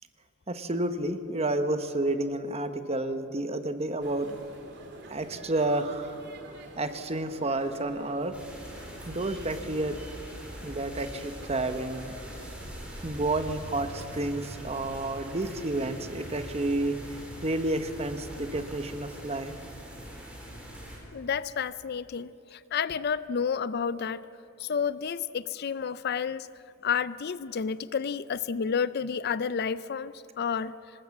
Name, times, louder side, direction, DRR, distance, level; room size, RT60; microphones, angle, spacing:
voice 1, 0.5-4.4 5.1-6.1 6.8-8.4 9.1-10.0 10.6-12.1 13.0-17.0 17.4-19.5, right 2 dB, 30° right, 9 dB, 1.1 m, -30 dB
sound 1, 4.0-15.1, right 1 dB, 55° right, 3.1 m, -48 dB
sound 2, 8.3-21.0, equal, 5° right, 4.7 m, -43 dB
voice 2, 21.1-24.2 24.6-26.5 26.8-30.7, left 6 dB, 50° left, 17 dB, 0.4 m, -30 dB
26.0 x 20.0 x 7.3 m, 2.8 s
head